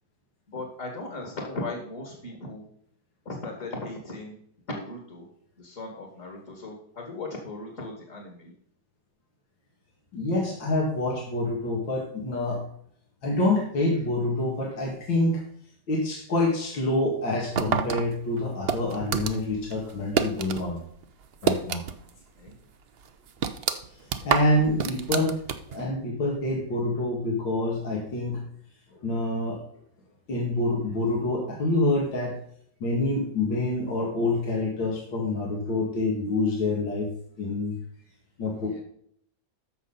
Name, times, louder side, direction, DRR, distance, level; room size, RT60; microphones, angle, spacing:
voice 1, 0.5-2.7 3.3-4.4 4.7-5.3 5.6-8.5 22.4-22.6 24.2-24.7 38.6-38.8, left 2 dB, 45° left, 1 dB, 2.4 m, -37 dB
voice 2, 10.1-12.6 13.2-15.4 15.9-20.8 21.4-21.8 24.2-25.3 25.7-28.4 29.0-29.6 30.3-32.4 32.8-37.1 37.4-37.7 38.4-38.8, left 2 dB, 75° left, -2 dB, 2.8 m, -26 dB
sound 1, 17.6-20.7 21.0-22.2 22.5-22.6 23.0-25.9, right 7 dB, 70° right, 0.5 m, -28 dB
14.0 x 5.8 x 4.0 m, 0.66 s
omnidirectional pair, 2.1 m